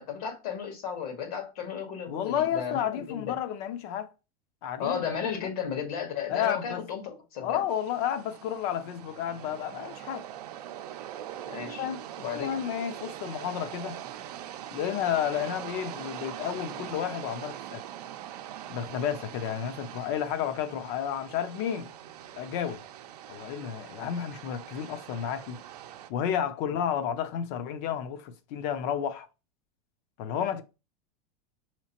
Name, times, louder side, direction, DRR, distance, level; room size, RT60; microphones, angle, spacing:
voice 1, 0.0-3.4 4.8-7.6 11.5-11.9 12.2-12.6, left 7 dB, 75° left, 1.4 m, -34 dB
voice 2, 2.1-4.1 4.6-5.3 6.3-6.8 7.4-10.3 11.8-12.0 12.3-14.0 14.7-17.8 18.7-21.9 22.4-22.8 23.3-25.6 26.1-29.3 30.2-30.6, left 9 dB, 55° left, 0.6 m, -31 dB
sound 1, 7.7-26.1, right 11 dB, 85° right, 0.5 m, -42 dB
4.9 x 2.9 x 2.9 m
supercardioid pair, 135°, 20 cm